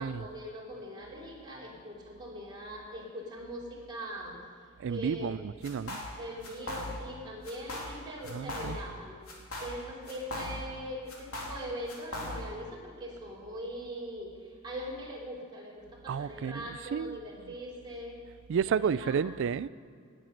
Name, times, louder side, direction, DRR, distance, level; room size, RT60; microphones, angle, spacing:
voice 1, 0.0-4.4 4.9-5.4 6.1-9.2 9.6-18.2 18.7-19.4, equal, 20° right, -4 dB, 3.1 m, -41 dB
voice 2, 4.8-6.0 8.3-8.8 16.1-17.2 18.5-19.7, right 7 dB, 60° right, 17 dB, 0.3 m, -31 dB
sound 1, 5.6-6.2 6.4-7.2 7.4-8.0 8.2-9.0 9.3-10.8 11.1-12.6, left 1 dB, 85° left, 3.1 m, -39 dB
18.5 x 7.6 x 6.4 m, 2.2 s
head